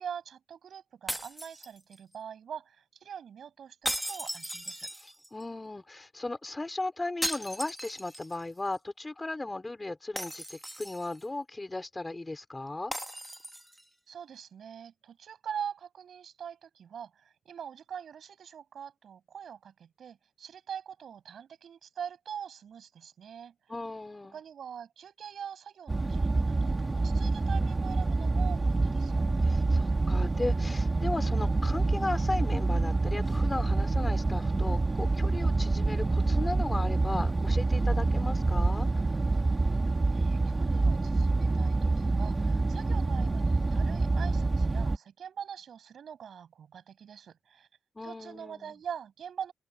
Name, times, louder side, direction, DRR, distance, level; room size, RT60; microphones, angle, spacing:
voice 1, 0.0-4.9 14.1-23.5 24.3-29.3 40.1-47.7 48.0-49.5, right 8 dB, 80° right, 6.9 m, -43 dB
sound 1, 1.1-2.2 3.8-5.4 7.2-8.4 8.7-8.8 10.2-11.2 12.9-13.8, equal, 5° right, 1.6 m, -37 dB
voice 2, 4.9-12.9 23.7-24.4 29.4-39.1 48.0-48.8, left 2 dB, 20° left, 3.9 m, -36 dB
sound 2, 25.9-45.0, right 3 dB, 25° right, 2.4 m, -27 dB
open air
wide cardioid pair, 110°, 0 cm